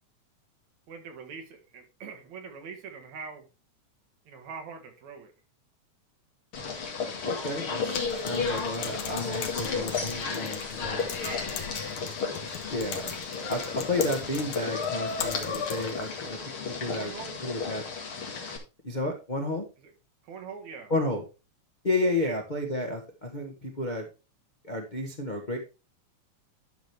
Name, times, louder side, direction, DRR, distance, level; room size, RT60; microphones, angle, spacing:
voice 1, 0.9-3.5 4.3-5.3 11.2-11.5 16.9-17.4 19.8-19.9 20.2-20.9 22.2-22.4, right 5 dB, 75° right, 4 dB, 3.1 m, -42 dB
sound 1, 6.5-18.6, left 5 dB, 50° left, 2.5 m, -33 dB
voice 2, 7.2-11.0 12.4-13.1 13.5-16.4 16.8-17.1 17.4-17.8 18.8-19.6 20.9-21.2 21.8-24.1 24.6-25.6, left 2 dB, 30° left, 1 dB, 0.8 m, -31 dB
Typing, 7.9-16.1, left 8 dB, 80° left, 2.6 m, -40 dB
11.5 x 6.3 x 3.4 m, 0.29 s
omnidirectional pair, 3.3 m